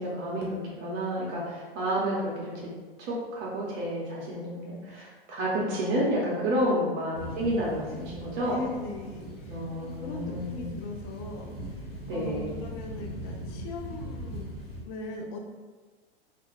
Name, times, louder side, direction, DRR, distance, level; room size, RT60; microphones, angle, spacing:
voice 1, 0.0-2.5 3.0-8.6 9.5-10.7 12.1-12.6, equal, 40° right, -5 dB, 0.7 m, -30 dB
voice 2, 6.4-7.2 8.4-14.6 14.9-15.4, left 2 dB, 30° left, 1 dB, 0.4 m, -40 dB
sound 1, 7.1-14.8, equal, 80° left, 0.9 m, -40 dB
2.5 x 2.2 x 3.2 m, 1.3 s
figure-of-eight pair, 95°, 29 cm